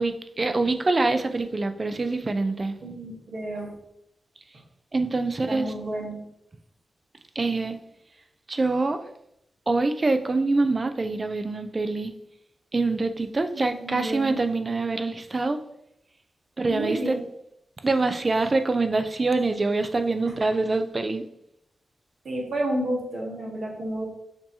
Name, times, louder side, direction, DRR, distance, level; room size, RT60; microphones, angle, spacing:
voice 1, 0.0-2.7 4.9-5.7 7.4-7.8 8.5-9.0 9.7-12.1 12.7-15.6 16.6-17.2 17.8-21.3, right 3 dB, 35° right, 8 dB, 0.4 m, -25 dB
voice 2, 2.8-3.8 5.5-6.2 13.5-14.4 16.7-17.2 20.2-20.4 22.2-24.0, right 1 dB, 75° right, -2 dB, 1.3 m, -31 dB
6.7 x 2.8 x 2.7 m, 0.76 s
cardioid pair, 80°, 0 cm